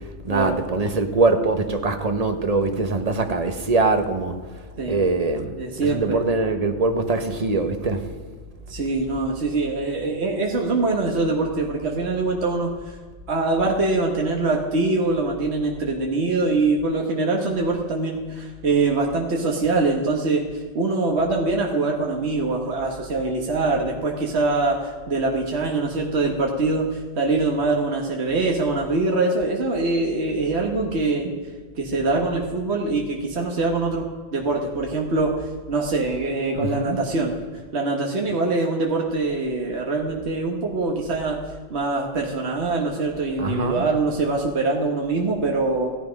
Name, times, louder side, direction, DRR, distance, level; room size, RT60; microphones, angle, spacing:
voice 1, 0.2-4.4 4.8-5.6 5.9-8.1 36.5-37.0 43.4-43.8, right 3 dB, 35° right, 1.1 m, -23 dB
voice 2, 5.6-6.2 8.7-12.7 13.3-20.5 20.7-31.3 31.8-34.1 34.3-37.3 37.7-41.4 41.7-45.9, right 3 dB, 70° right, 1.6 m, -23 dB
15.0 x 11.0 x 5.2 m
omnidirectional pair, 1.2 m